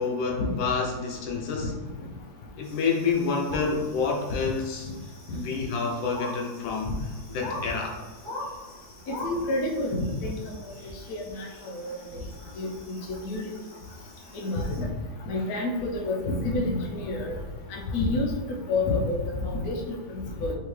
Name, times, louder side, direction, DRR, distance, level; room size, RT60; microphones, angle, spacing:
voice 1, 0.0-1.7 2.6-4.9 5.3-6.9 7.3-8.0, left 5 dB, 80° left, 0 dB, 1.4 m, -28 dB
sound 1, 2.6-14.8, left 1 dB, 45° left, 1.8 m, -43 dB
voice 2, 9.1-10.4 11.1-12.0 12.6-13.5 14.3-14.9 15.3-17.3 17.7-20.5, left 2 dB, 65° left, 0 dB, 1.0 m, -29 dB
4.6 x 2.8 x 3.1 m, 1.3 s
omnidirectional pair, 2.0 m